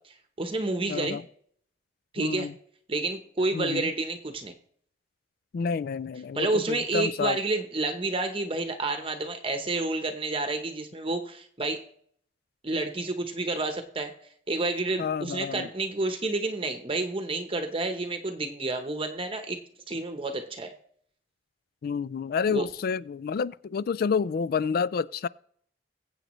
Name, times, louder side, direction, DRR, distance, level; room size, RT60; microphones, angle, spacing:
voice 1, 0.4-1.2 2.1-2.5 2.9-4.5 6.3-11.8 12.6-14.1 14.5-19.6 19.9-20.7 22.5-22.6, right 2 dB, 30° right, 0.9 m, -29 dB
voice 2, 0.9-1.2 2.2-2.5 3.5-3.9 5.5-7.4 15.0-15.7 21.8-25.3, left 6 dB, 55° left, 0.3 m, -29 dB
21.5 x 7.9 x 3.1 m
head